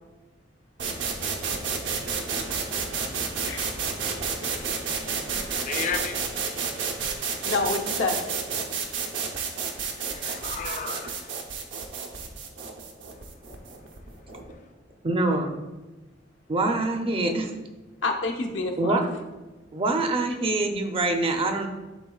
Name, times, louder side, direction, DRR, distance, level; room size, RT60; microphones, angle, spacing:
sound 1, 0.8-14.5, right 5 dB, 75° right, 0.7 m, -31 dB
voice 1, 2.3-6.5 10.0-11.4, left 5 dB, 40° left, 6 dB, 0.5 m, -37 dB
voice 2, 7.4-8.2 18.0-19.0, left 3 dB, 75° left, 2 dB, 0.8 m, -28 dB
voice 3, 15.0-15.5 16.5-17.5 18.8-19.1 19.7-21.7, right 2 dB, 30° right, 5 dB, 0.5 m, -25 dB
11.0 x 3.8 x 2.3 m, 1.2 s
head